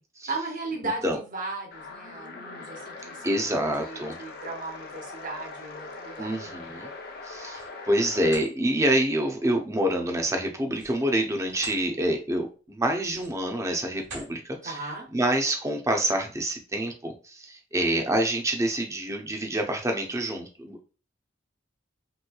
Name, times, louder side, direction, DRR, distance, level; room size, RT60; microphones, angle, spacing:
voice 1, 0.3-6.7 14.6-15.1, right 3 dB, 45° right, 1 dB, 0.9 m, -36 dB
sound 1, 1.7-8.5, left 3 dB, 55° left, 0.6 m, -41 dB
voice 2, 3.2-4.2 6.2-6.9 7.2-14.8 15.1-20.8, right 1 dB, 15° right, 3 dB, 0.6 m, -27 dB
sound 2, 7.1-7.7 8.2-8.5 10.6-11.8 12.3-12.5 13.0-13.5 14.0-14.4, right 2 dB, 70° right, 1.2 m, -44 dB
3.2 x 3.0 x 2.2 m, 0.34 s
head